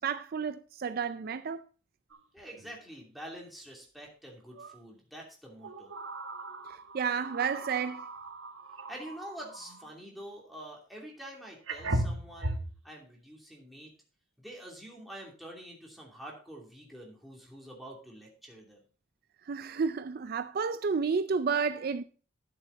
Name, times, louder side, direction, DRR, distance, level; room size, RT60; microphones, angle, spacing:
voice 1, 0.0-1.6 6.9-8.0 19.5-22.0, right 5 dB, 50° right, 0.4 m, -31 dB
sound 1, 2.1-2.2 2.6-2.7 4.5-4.8 5.6-9.9 11.1-11.2 11.7-12.8, right 1 dB, 80° right, 1.6 m, -37 dB
voice 2, 2.3-5.9 8.9-12.6 12.8-13.9 14.4-18.8, right 1 dB, ahead, 2.8 m, -46 dB
12.0 x 7.2 x 4.0 m
head